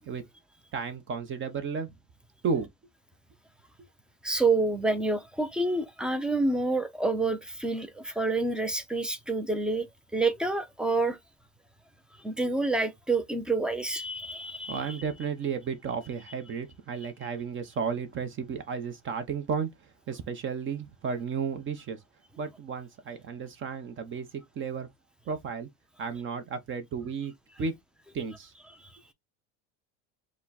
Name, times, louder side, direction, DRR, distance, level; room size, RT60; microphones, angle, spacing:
voice 1, 0.7-1.9 2.4-2.7 14.7-19.7 20.1-22.0 22.4-24.3 24.6-24.9 25.3-25.7 26.0-27.3 27.6-27.7 28.1-28.5, right 6 dB, 35° right, 0.8 m, -33 dB
voice 2, 4.2-9.9 10.1-11.2 12.2-15.0 28.8-28.9, right 3 dB, ahead, 0.5 m, -28 dB
5.0 x 2.2 x 4.0 m
cardioid pair, 150°, 35 cm